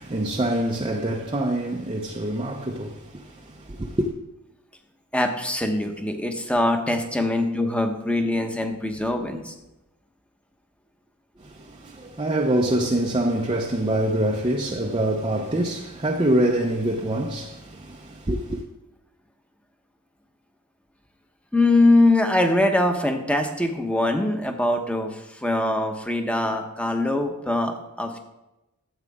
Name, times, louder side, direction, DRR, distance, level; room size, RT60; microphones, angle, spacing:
voice 1, 0.0-4.1 11.4-18.6, right 1 dB, 25° right, 0.7 m, -25 dB
voice 2, 5.1-9.5 21.5-28.2, left 2 dB, 5° left, 1.1 m, -22 dB
13.5 x 8.1 x 3.6 m
head